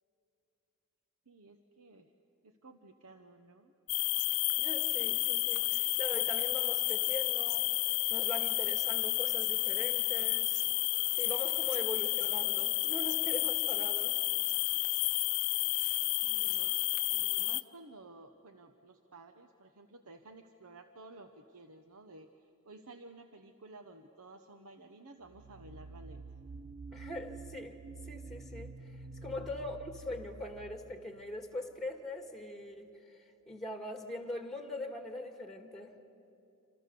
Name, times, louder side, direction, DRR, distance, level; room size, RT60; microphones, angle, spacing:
voice 1, 1.3-2.1 2.4-3.7 16.2-16.8 17.1-22.3 22.6-26.2 29.3-29.5, right 2 dB, 80° right, 6 dB, 1.1 m, -54 dB
sound 1, 3.9-17.6, left 18 dB, 70° left, 0.6 m, -31 dB
voice 2, 4.6-7.7 8.1-10.7 11.1-14.2 26.9-27.8 28.0-35.9, left 1 dB, ahead, 5 dB, 1.8 m, -42 dB
sound 2, 25.2-31.9, right 3 dB, 55° right, 0.8 m, -48 dB
27.5 x 27.0 x 6.9 m, 2.8 s
head